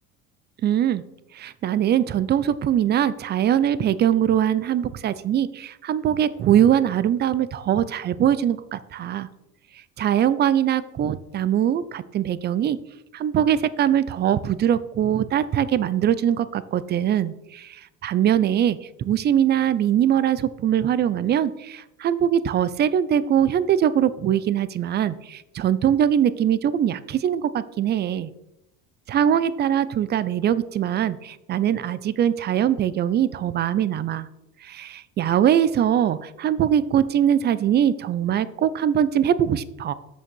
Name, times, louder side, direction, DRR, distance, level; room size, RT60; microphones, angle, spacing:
voice 1, 0.6-1.0 1.3-9.3 10.0-12.8 13.1-28.3 29.1-34.3 34.6-39.9, right 10 dB, 35° right, 16 dB, 0.5 m, -22 dB
6.5 x 6.5 x 6.2 m, 0.91 s
cardioid pair, 115°, 29 cm